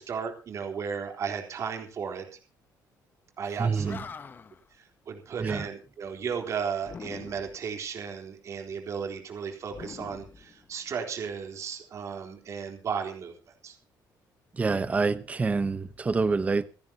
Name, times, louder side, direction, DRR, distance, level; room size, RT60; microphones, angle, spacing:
voice 1, 0.0-2.4 3.4-4.0 4.8-13.8, right 6 dB, 45° right, 3 dB, 3.9 m, -35 dB
Animal, 3.5-3.6 3.8-4.7 6.8-7.7 9.7-11.0, left 5 dB, 30° left, 1.0 m, -44 dB
voice 2, 3.6-4.0 5.4-5.6 14.5-16.6, right 4 dB, 20° right, 13 dB, 1.0 m, -26 dB
28.0 x 10.5 x 2.9 m, 0.34 s
cardioid pair, 150°, 7 cm